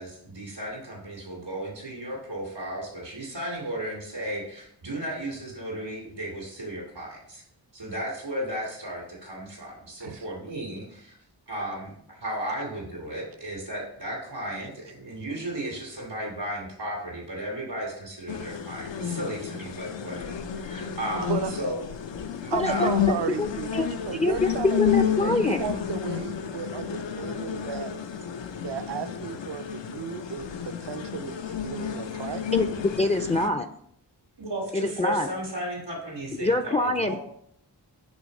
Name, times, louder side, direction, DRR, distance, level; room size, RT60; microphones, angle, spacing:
voice 1, 0.0-7.4 7.7-11.1 11.5-20.4 20.7-21.8 22.4-22.9 25.3-25.4 34.4-37.2, right 1 dB, 90° right, -4 dB, 2.2 m, -35 dB
sound 1, 18.3-33.5, left 8 dB, 90° left, 0.6 m, -31 dB
voice 2, 21.2-21.5 22.5-27.9 28.6-32.4, right 7 dB, 70° right, 9 dB, 0.5 m, -34 dB
voice 3, 22.5-24.5 24.8-25.6 32.5-32.7 33.0-33.7 34.7-35.3 36.4-37.2, left 2 dB, 15° left, 8 dB, 0.3 m, -25 dB
6.2 x 3.2 x 5.2 m, 0.67 s
wide cardioid pair, 55°, 43 cm